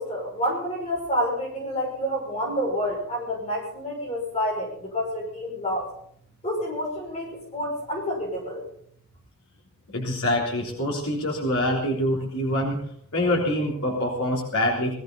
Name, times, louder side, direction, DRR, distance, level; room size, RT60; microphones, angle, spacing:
voice 1, 0.0-5.9 6.4-8.6, equal, 30° left, -1 dB, 5.9 m, -28 dB
voice 2, 9.9-12.8 13.1-14.9, left 1 dB, 70° left, -2 dB, 3.6 m, -25 dB
21.5 x 15.0 x 4.0 m, 0.65 s
head